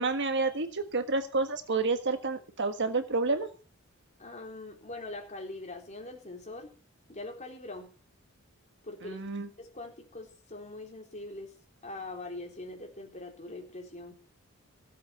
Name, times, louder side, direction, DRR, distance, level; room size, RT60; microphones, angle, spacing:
voice 1, 0.0-3.5 9.0-9.5, right 3 dB, 55° right, 8 dB, 1.6 m, -29 dB
voice 2, 4.2-6.7 7.1-7.9 8.8-9.2 9.6-11.6 11.8-14.1, left 2 dB, 35° left, 2 dB, 4.0 m, -42 dB
16.5 x 7.8 x 7.0 m, 0.36 s
head